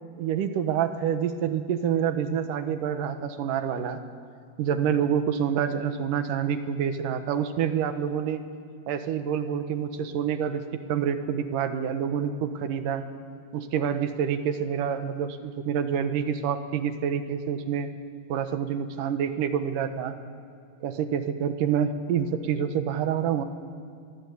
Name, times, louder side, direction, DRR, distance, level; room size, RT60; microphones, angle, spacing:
voice 1, 0.2-4.0 4.6-8.4 8.9-13.0 13.5-17.9 18.3-20.2 20.8-23.4, right 8 dB, 70° right, 9 dB, 2.6 m, -27 dB
23.5 x 21.5 x 8.4 m, 2.3 s
omnidirectional pair, 4.1 m